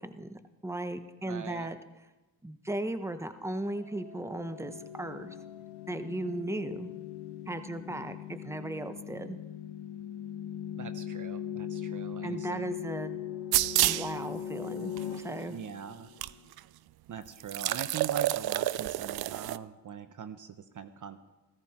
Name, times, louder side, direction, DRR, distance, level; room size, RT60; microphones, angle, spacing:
voice 1, 0.0-1.8 2.4-5.4 5.9-6.9 7.5-9.4 12.2-13.2 13.8-15.6, right 1 dB, 5° right, 10 dB, 1.1 m, -36 dB
voice 2, 1.2-1.7 10.7-12.7 15.5-16.1 17.1-21.2, right 7 dB, 50° right, 11 dB, 0.9 m, -42 dB
sound 1, 3.7-16.4, left 9 dB, 85° left, 1.2 m, -40 dB
sound 2, 13.5-14.1 15.0-15.1 16.2-16.3 16.6-16.7 17.4-19.6, right 15 dB, 65° right, 0.5 m, -28 dB
16.5 x 14.5 x 4.4 m, 1.1 s
cardioid pair, 65°, 40 cm